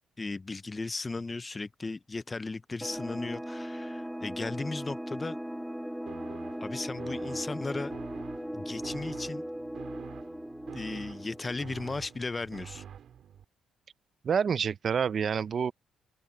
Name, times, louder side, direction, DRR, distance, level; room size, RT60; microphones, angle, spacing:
voice 1, 0.2-5.4 6.6-7.9 8.5-9.4 10.7-12.8, left 3 dB, 20° left, 0.5 m, -36 dB
sound 1, 2.8-12.1, equal, ahead, 1.3 m, -38 dB
sound 2, 6.1-13.4, right 9 dB, 55° right, 3.5 m, -47 dB
voice 2, 14.2-15.7, right 7 dB, 40° right, 0.5 m, -27 dB
open air
cardioid pair, 145°, 0 cm